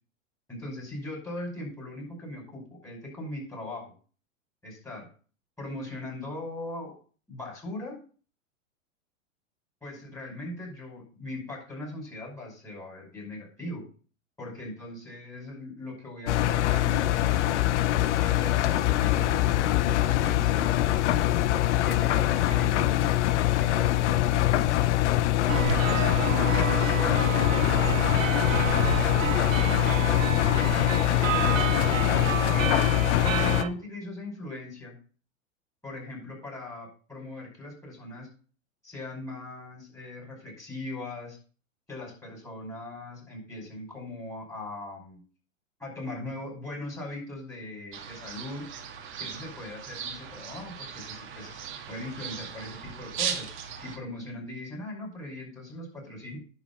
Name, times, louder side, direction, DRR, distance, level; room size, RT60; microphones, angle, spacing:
voice 1, 0.5-3.9 4.6-5.1 5.6-6.9 7.3-8.0 9.8-13.8 14.4-17.6 18.2-21.6 21.8-23.1 23.6-24.8 25.6-29.2 29.5-31.0 31.4-32.7 33.2-35.0 35.8-38.3 38.8-41.4 41.9-45.2 45.8-48.7 49.2-51.6 51.9-53.5 53.8-56.4, left 1 dB, 5° left, -3 dB, 5.3 m, -39 dB
Engine, 16.3-33.6, left 14 dB, 60° left, 0.8 m, -23 dB
sound 1, 25.5-33.7, right 9 dB, 75° right, 1.2 m, -30 dB
sound 2, 47.9-54.0, right 7 dB, 30° right, 1.8 m, -38 dB
11.0 x 4.6 x 7.1 m, 0.39 s
hypercardioid pair, 120°, 39 cm